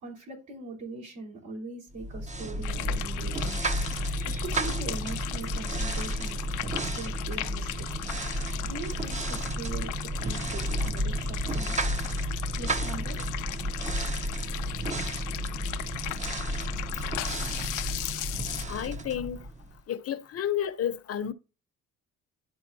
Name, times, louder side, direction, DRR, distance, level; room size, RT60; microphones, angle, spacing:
voice 1, 0.0-3.6 4.1-7.9 8.6-11.8 12.5-13.2, right 3 dB, 70° right, 4.5 m, -41 dB
sound 1, 2.0-19.8, right 1 dB, 25° right, 0.7 m, -32 dB
simmering sauce, 2.6-18.6, left 15 dB, 85° left, 0.5 m, -37 dB
voice 2, 18.7-19.5 19.9-21.3, left 10 dB, 50° left, 0.7 m, -31 dB
12.0 x 4.1 x 2.7 m
cardioid pair, 90°, 30 cm